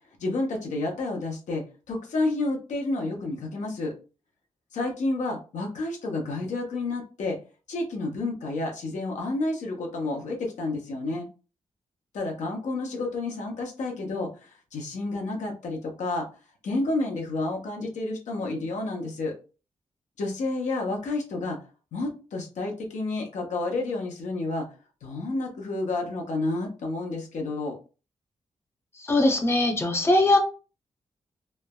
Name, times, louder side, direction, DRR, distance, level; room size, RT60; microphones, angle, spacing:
voice 1, 0.2-3.9 4.7-7.4 7.7-11.3 12.1-14.3 14.7-16.3 16.6-19.3 20.2-21.6 21.9-24.7 25.0-27.7, left 2 dB, 85° left, 1 dB, 0.7 m, -30 dB
voice 2, 29.0-30.4, left 2 dB, 20° left, 4 dB, 0.6 m, -21 dB
3.1 x 2.0 x 2.2 m, 0.34 s
cardioid pair, 70°, 12 cm